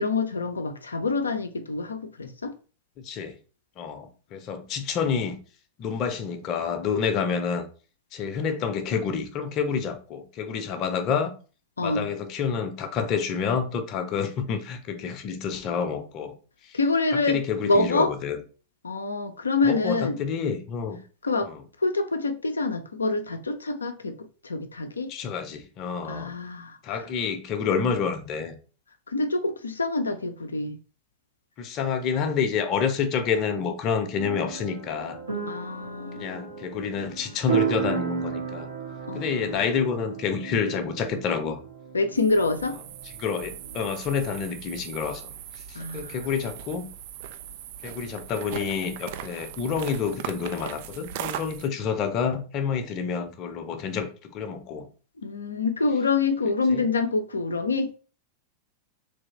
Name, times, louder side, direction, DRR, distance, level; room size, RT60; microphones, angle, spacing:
voice 1, 0.0-2.5 11.8-12.1 16.7-18.1 18.8-20.2 21.2-21.5 21.8-25.1 26.1-26.8 29.1-30.8 35.5-36.4 39.1-39.5 41.9-42.8 45.7-46.2 55.2-57.9, left 3 dB, 75° left, 0.6 m, -26 dB
voice 2, 3.0-3.4 3.8-5.4 5.8-7.6 8.1-11.3 11.8-16.3 16.6-16.8 17.1-18.4 19.6-21.0 21.5-21.6 25.1-26.3 26.8-28.6 31.6-35.2 36.2-38.7 39.1-41.6 43.2-45.3 45.7-46.9 47.8-54.9 56.7-56.9, left 6 dB, 35° left, 0.8 m, -28 dB
sound 1, 34.1-43.8, right 6 dB, 80° right, 1.5 m, -34 dB
sound 2, 42.2-51.7, right 10 dB, 50° right, 0.3 m, -39 dB
3.4 x 3.2 x 4.1 m
figure-of-eight pair, 90°, 0 cm